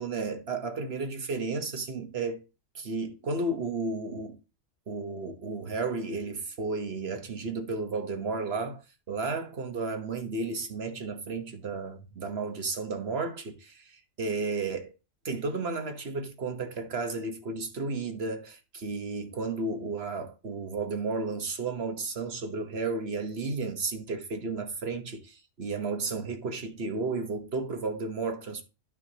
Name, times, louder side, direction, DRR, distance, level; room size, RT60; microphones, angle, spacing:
voice 1, 0.0-2.4 2.7-4.4 4.9-14.9 15.2-28.6, right 3 dB, 55° right, 1.4 m, -33 dB
11.5 x 6.1 x 2.9 m
omnidirectional pair, 1.3 m